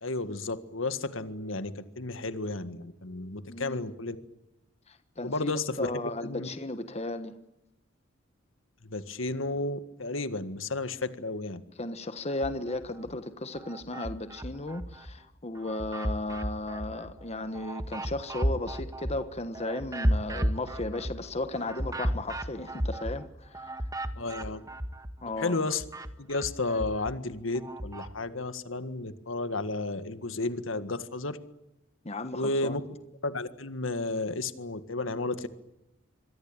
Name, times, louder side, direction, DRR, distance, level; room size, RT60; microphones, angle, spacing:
voice 1, 0.0-4.2 5.2-6.5 8.8-11.6 24.2-24.6 25.4-25.8 26.2-31.4 32.3-32.8 33.2-35.5, left 2 dB, 70° left, 1.8 m, -32 dB
voice 2, 3.5-3.9 4.9-7.4 11.8-23.7 25.2-25.6 32.0-32.8, left 2 dB, 35° left, 1.3 m, -35 dB
sound 1, 12.3-13.1 13.5-15.1 15.5-25.3 25.5-28.1, equal, 15° right, 1.7 m, -34 dB
26.5 x 22.5 x 9.0 m
head